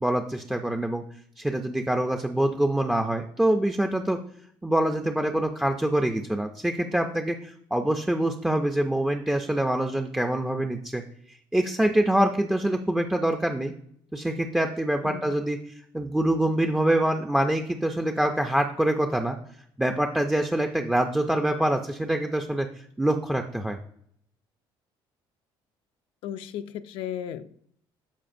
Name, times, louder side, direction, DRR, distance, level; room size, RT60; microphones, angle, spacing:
voice 1, 0.0-1.0 1.4-4.2 4.6-11.0 11.5-13.7 14.1-15.6 15.9-19.4 19.8-22.7 23.0-23.8, right 1 dB, 5° right, 5 dB, 0.3 m, -25 dB
voice 2, 26.2-27.5, left 10 dB, 70° left, 9 dB, 0.4 m, -35 dB
12.5 x 4.6 x 2.6 m, 0.67 s
cardioid pair, 155°, 10 cm